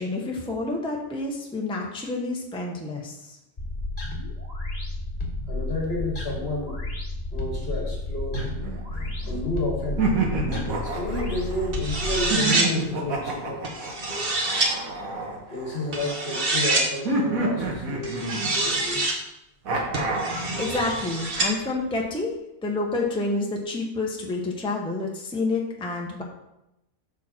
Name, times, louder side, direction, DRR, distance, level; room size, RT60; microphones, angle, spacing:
voice 1, 0.0-3.4 20.6-22.3 22.6-26.2, left 2 dB, 5° left, -1 dB, 0.9 m, -29 dB
sound 1, 3.6-12.3, left 2 dB, 30° left, 1.4 m, -32 dB
voice 2, 5.5-6.8 7.3-8.5 9.3-10.1 10.8-13.7 14.9-15.1 15.5-19.1, left 2 dB, 45° left, 1 dB, 1.5 m, -31 dB
sound 2, 8.3-9.4 10.0-11.7 12.3-16.1 17.0-18.8 19.6-20.5, right 3 dB, 80° right, 1.8 m, -28 dB
sound 3, 11.7-12.7 13.6-14.7 15.9-16.9 18.0-19.2 19.9-21.5, right 2 dB, 45° right, 1.4 m, -26 dB
6.8 x 6.3 x 4.4 m, 0.89 s
omnidirectional pair, 1.4 m